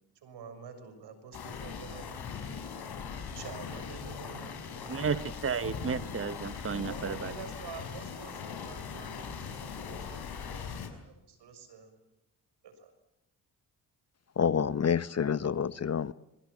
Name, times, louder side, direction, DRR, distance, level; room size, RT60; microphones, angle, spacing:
voice 1, 0.2-2.4 3.4-5.4 6.9-11.9 12.6-12.9, right 5 dB, 75° right, 6.8 m, -48 dB
sound 1, 1.3-10.9, left 6 dB, 60° left, 6.0 m, -40 dB
voice 2, 4.9-7.3, right 6 dB, 30° right, 1.1 m, -33 dB
voice 3, 14.4-16.1, left 7 dB, 35° left, 1.0 m, -28 dB
26.0 x 24.0 x 8.8 m
supercardioid pair, 60°, 42 cm